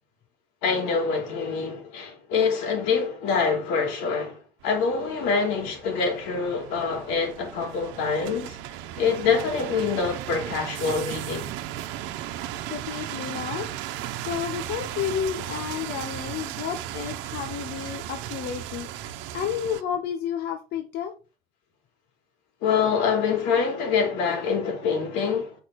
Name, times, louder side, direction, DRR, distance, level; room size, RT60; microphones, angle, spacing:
voice 1, 0.6-8.6 9.0-11.5 22.6-25.6, left 5 dB, 85° left, 3.7 m, -25 dB
sound 1, 4.6-19.8, right 12 dB, 90° right, 1.0 m, -36 dB
voice 2, 12.3-13.7 14.2-21.1, left 8 dB, 55° left, 1.0 m, -31 dB
8.3 x 5.6 x 4.3 m
cardioid pair, 165°, 19 cm